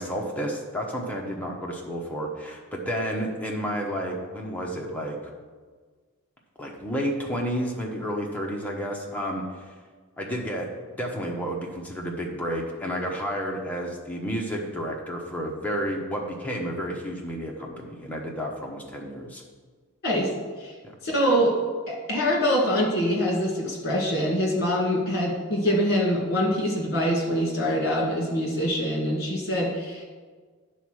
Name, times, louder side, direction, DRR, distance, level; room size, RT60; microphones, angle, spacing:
voice 1, 0.0-5.2 6.6-9.4 10.2-10.7 11.0-19.4 20.8-20.9, equal, 5° left, -1 dB, 0.9 m, -31 dB
voice 2, 21.0-21.6 21.9-30.0, equal, 45° left, -1 dB, 2.0 m, -24 dB
8.9 x 4.2 x 6.3 m, 1.5 s
head